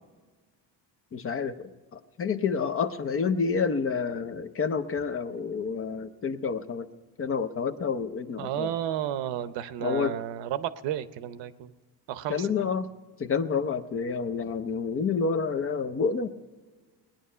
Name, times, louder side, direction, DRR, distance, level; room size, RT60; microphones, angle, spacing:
voice 1, 1.1-6.9 7.2-8.7 9.8-10.1 12.3-12.9 13.2-16.3, left 5 dB, 30° left, 11 dB, 0.6 m, -29 dB
voice 2, 8.4-11.7 12.1-12.7, right 11 dB, 75° right, 13 dB, 0.8 m, -32 dB
19.0 x 10.0 x 5.5 m, 1.4 s
cardioid pair, 140°, 44 cm